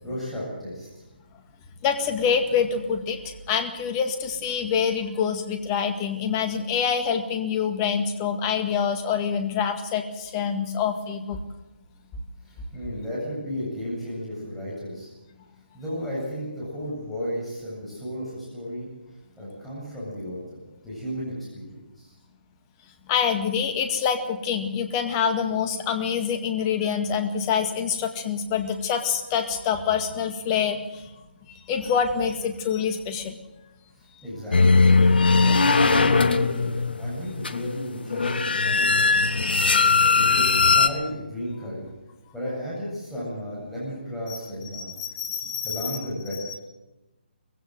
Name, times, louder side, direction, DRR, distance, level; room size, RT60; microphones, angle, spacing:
voice 1, 0.0-0.9 12.4-15.1 15.7-18.9 19.4-22.1 34.0-34.9 35.4-39.4 40.1-41.8 42.3-44.9 45.4-46.6, equal, 5° left, -8 dB, 7.9 m, -34 dB
voice 2, 1.8-11.4 23.1-31.0 31.7-33.4 40.0-40.1 44.3-44.4 44.7-45.9 46.5-46.6, left 7 dB, 25° left, 7 dB, 2.0 m, -26 dB
sound 1, 34.5-40.9, left 4 dB, 65° left, 1.4 m, -19 dB
21.0 x 16.0 x 7.8 m, 1.0 s
figure-of-eight pair, 145°, 6 cm